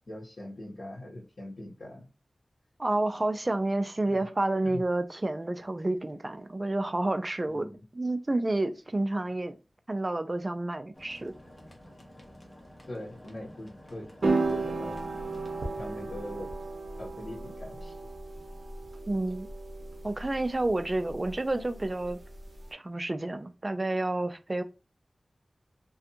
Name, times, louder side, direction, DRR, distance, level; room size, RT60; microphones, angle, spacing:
voice 1, 0.1-2.1 4.1-4.3 4.6-4.8 7.5-7.8 12.9-15.0 15.8-16.5 17.0-18.0, left 1 dB, 75° left, 1.1 m, -42 dB
voice 2, 2.8-7.7 7.9-9.6 9.9-11.3 19.1-19.5 20.0-22.2 22.7-24.6, right 2 dB, 35° right, 0.4 m, -29 dB
sound 1, 10.9-16.1, left 1 dB, 20° left, 0.8 m, -51 dB
sound 2, 14.2-22.7, right 3 dB, 65° right, 0.7 m, -35 dB
2.5 x 2.3 x 2.7 m
wide cardioid pair, 75°, 0 cm